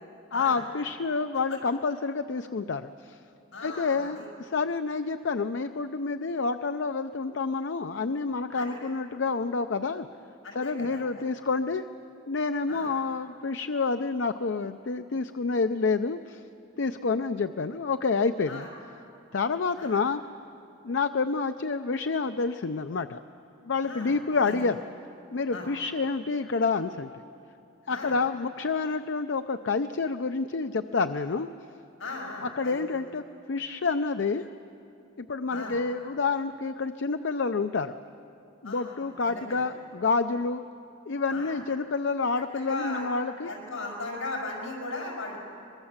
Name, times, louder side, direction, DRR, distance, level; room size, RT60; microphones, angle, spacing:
voice 1, 0.3-3.2 3.6-10.1 10.5-11.8 12.3-16.4 16.8-18.7 19.3-20.2 20.8-23.2 23.6-24.8 25.3-27.1 27.9-31.5 32.4-33.2 33.5-34.4 35.2-37.9 38.6-40.6 41.1-43.5, left 4 dB, 60° left, 9 dB, 0.5 m, -28 dB
voice 2, 3.5-4.3 8.5-8.9 10.4-11.0 12.7-12.9 18.5-18.7 19.8-20.0 23.8-24.1 24.4-24.6 25.5-25.7 27.9-28.2 32.0-32.8 35.5-35.8 38.6-39.6 41.3-41.6 42.5-43.1 43.4-45.4, left 2 dB, 80° left, -1 dB, 6.1 m, -37 dB
24.0 x 21.5 x 7.3 m, 2.8 s
head